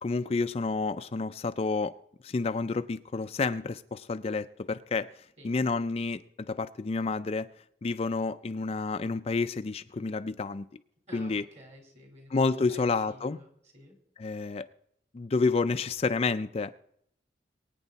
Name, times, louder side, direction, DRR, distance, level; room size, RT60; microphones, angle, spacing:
voice 1, 0.0-1.9 2.2-5.1 5.4-6.2 6.5-7.5 7.8-10.7 11.1-11.4 12.3-13.4 14.2-14.7 15.1-16.7, left 4 dB, 35° left, 10 dB, 0.4 m, -29 dB
voice 2, 11.1-13.9, equal, 40° right, 2 dB, 4.0 m, -52 dB
23.5 x 9.2 x 4.0 m, 0.71 s
head